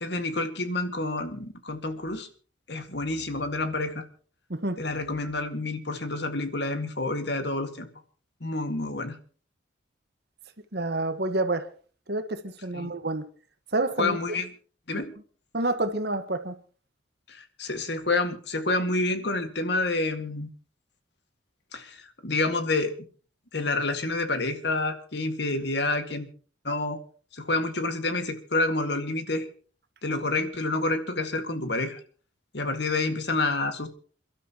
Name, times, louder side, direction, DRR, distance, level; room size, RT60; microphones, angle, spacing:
voice 1, 0.0-2.3 2.7-4.0 4.8-7.9 8.4-9.2 12.7-12.9 14.0-14.5 14.9-15.1 17.3-20.5 21.7-23.0 23.5-26.3 26.6-27.0 27.3-29.5 30.0-32.0 32.5-33.9, left 2 dB, 60° left, 2.0 m, -28 dB
voice 2, 10.7-11.7 12.1-13.2 13.7-14.2 15.5-16.5, right 2 dB, 55° right, 1.5 m, -28 dB
28.0 x 12.5 x 3.0 m
head